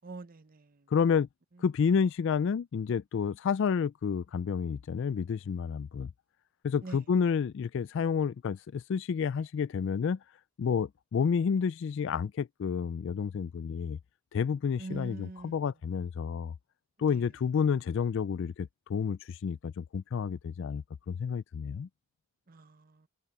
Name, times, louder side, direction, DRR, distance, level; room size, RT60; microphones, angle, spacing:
voice 1, 0.0-0.9 6.8-7.0 14.8-15.6 17.0-17.3 22.5-23.1, right 2 dB, 40° right, 0.8 m, -44 dB
voice 2, 0.9-1.3 1.6-6.1 6.6-10.2 10.6-14.0 14.3-16.5 17.0-21.9, left 6 dB, 60° left, 0.3 m, -30 dB
head